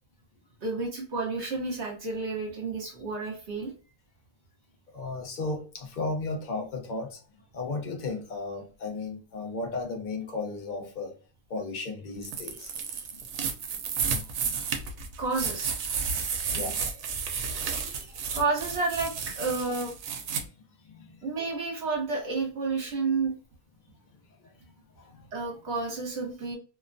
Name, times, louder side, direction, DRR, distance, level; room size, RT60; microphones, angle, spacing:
voice 1, 0.6-3.7 15.2-15.7 16.1-16.2 18.3-19.9 21.2-23.3 25.3-26.6, right 3 dB, 55° right, 1.1 m, -30 dB
voice 2, 4.9-7.2 7.5-11.1 11.5-12.9 13.1-13.2 16.1-17.1 17.4-18.4 20.8-21.2 24.4-24.5 25.0-25.3, left 3 dB, 80° left, 0.4 m, -35 dB
sound 1, 12.2-20.4, right 6 dB, 90° right, 1.1 m, -32 dB
2.8 x 2.2 x 2.5 m
omnidirectional pair, 1.6 m